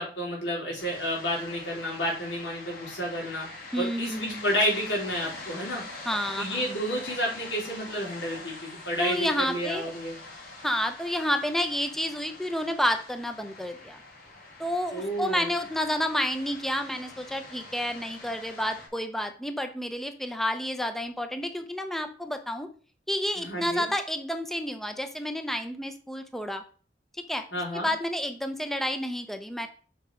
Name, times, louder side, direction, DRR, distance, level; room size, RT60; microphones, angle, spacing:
voice 1, 0.0-3.5 3.8-5.8 6.4-10.2 14.9-15.5 23.4-23.9 27.5-27.9, equal, 90° left, -4 dB, 4.3 m, -30 dB
sound 1, 0.8-18.9, left 2 dB, 55° left, 3.1 m, -44 dB
voice 2, 3.7-4.5 6.1-6.6 9.0-9.9 10.6-14.0 14.6-22.7 23.1-26.6 27.3-27.5 27.7-29.7, equal, ahead, 7 dB, 0.6 m, -30 dB
7.1 x 4.9 x 4.9 m, 0.40 s
head